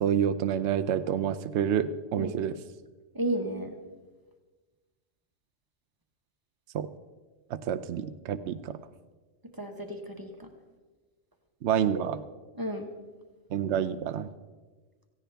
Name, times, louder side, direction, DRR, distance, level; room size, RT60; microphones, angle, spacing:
voice 1, 0.0-2.6 6.7-6.9 7.5-8.8 11.6-12.2 13.5-14.3, right 9 dB, 65° right, 11 dB, 0.9 m, -28 dB
voice 2, 3.1-3.7 9.6-10.5 11.9-12.0 12.5-12.9, right 1 dB, 15° right, 4 dB, 1.3 m, -33 dB
17.5 x 15.5 x 3.4 m, 1.3 s
omnidirectional pair, 1.3 m